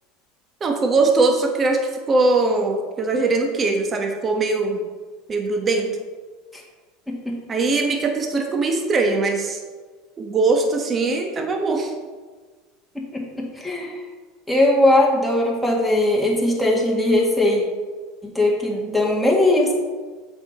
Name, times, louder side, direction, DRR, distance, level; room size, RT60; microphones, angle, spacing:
voice 1, 0.6-1.8 2.1-4.8 5.3-5.9 7.5-9.6 10.2-11.9, right 3 dB, 30° right, 3 dB, 1.1 m, -21 dB
voice 2, 13.1-13.9 14.5-17.6 18.2-19.7, left 1 dB, ahead, -4 dB, 1.9 m, -19 dB
7.3 x 5.1 x 4.2 m, 1.4 s
hypercardioid pair, 90°, 0 cm